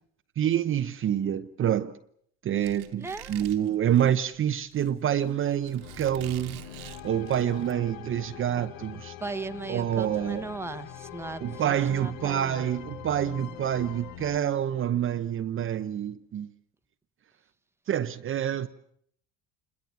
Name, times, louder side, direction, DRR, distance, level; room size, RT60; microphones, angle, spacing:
voice 1, 0.4-2.0 2.4-9.1 9.7-10.5 11.4-16.5 17.9-18.7, right 10 dB, 35° right, 0.9 m, -27 dB
Squeak, 2.6-7.7, right 15 dB, 85° right, 2.2 m, -47 dB
voice 2, 2.9-3.6 9.2-12.6, right 3 dB, 5° right, 1.2 m, -38 dB
sound 1, 5.8-14.4, left 11 dB, 70° left, 1.5 m, -43 dB
26.5 x 21.5 x 7.2 m
supercardioid pair, 105°, 34 cm